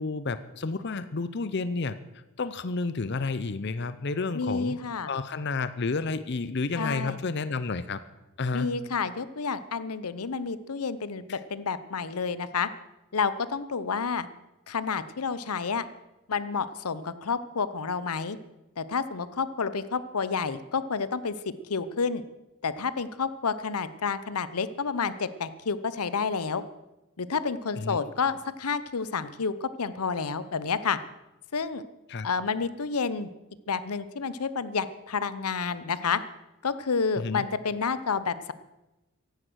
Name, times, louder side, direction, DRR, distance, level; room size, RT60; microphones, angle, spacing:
voice 1, 0.0-1.9 2.4-4.8 5.1-8.0 8.4-8.7 11.3-11.4 27.8-28.0 32.1-32.3 37.2-37.4, left 3 dB, 50° left, 13 dB, 0.6 m, -30 dB
voice 2, 4.3-5.1 6.8-7.2 8.5-12.7 13.1-14.3 14.7-15.9 16.3-18.4 18.8-22.2 22.6-26.6 27.2-31.0 31.5-31.8 32.2-33.3 33.7-36.2 36.6-38.5, left 5 dB, 85° left, 15 dB, 0.8 m, -30 dB
15.5 x 11.5 x 6.3 m, 1.0 s
head